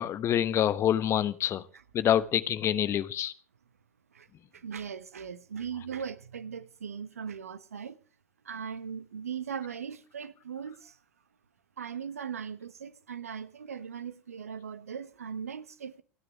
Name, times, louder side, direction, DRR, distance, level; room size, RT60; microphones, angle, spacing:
voice 1, 0.0-1.6 1.9-3.3, left 10 dB, 35° left, 1.1 m, -26 dB
voice 2, 4.5-8.0 8.4-11.0 11.8-16.0, right 7 dB, 75° right, 1.0 m, -39 dB
29.0 x 9.8 x 3.6 m
figure-of-eight pair, 80°, 8 cm